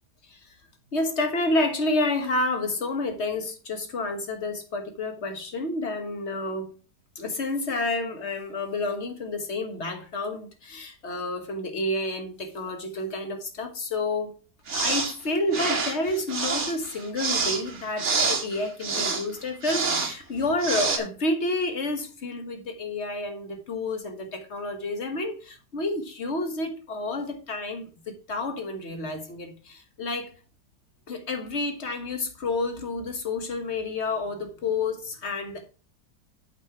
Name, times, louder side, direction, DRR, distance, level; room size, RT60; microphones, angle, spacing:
voice 1, 0.9-6.8 7.1-14.3 14.7-30.3 31.1-35.7, left 2 dB, 45° left, 1.6 m, -29 dB
sound 1, 14.7-15.1 15.5-19.2 19.6-20.1 20.6-21.0, right 4 dB, 45° right, 1.6 m, -27 dB
8.1 x 5.5 x 4.6 m
omnidirectional pair, 1.8 m